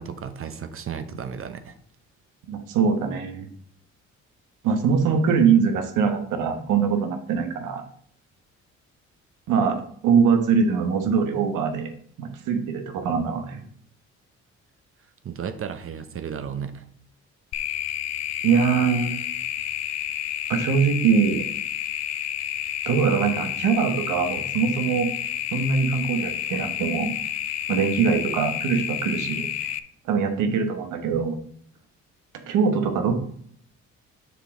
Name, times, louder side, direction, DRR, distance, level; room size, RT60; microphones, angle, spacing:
voice 1, 0.0-1.8 15.2-16.8, right 7 dB, 45° right, 9 dB, 0.7 m, -34 dB
voice 2, 2.5-3.5 4.6-7.8 9.5-9.8 10.0-11.9 12.2-13.6 18.4-19.1 20.5-21.4 22.9-25.1 25.5-27.2 27.7-29.5 30.0-31.4 32.3-33.1, right 6 dB, 90° right, 6 dB, 1.2 m, -22 dB
sound 1, 17.5-29.8, left 10 dB, 60° left, 0.5 m, -30 dB
6.7 x 5.0 x 3.7 m, 0.62 s
cardioid pair, 90°, 30 cm